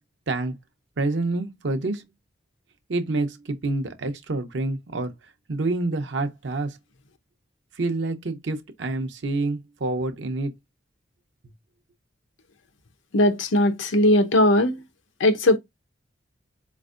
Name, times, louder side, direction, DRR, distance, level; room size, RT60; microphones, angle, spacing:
voice 1, 1.0-2.0 2.9-5.1 5.5-6.8 7.8-10.5, right 2 dB, 75° right, 0.6 m, -27 dB
voice 2, 13.1-14.8 15.2-15.6, left 1 dB, 90° left, 0.7 m, -19 dB
4.2 x 3.1 x 2.5 m
head